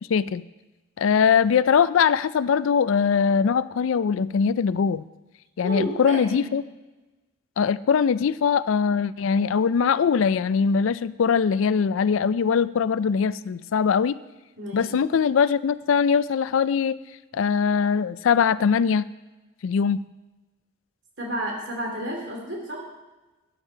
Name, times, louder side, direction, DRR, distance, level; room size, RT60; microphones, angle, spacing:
voice 1, 0.1-0.4 1.0-5.0 5.6-6.6 7.6-14.2 14.7-17.0 17.3-19.0 19.6-20.1, left 6 dB, 80° left, 17 dB, 0.4 m, -21 dB
voice 2, 5.6-6.5 14.6-15.0 21.2-22.8, equal, 60° right, 0 dB, 3.0 m, -31 dB
12.5 x 9.2 x 4.5 m, 1.1 s
head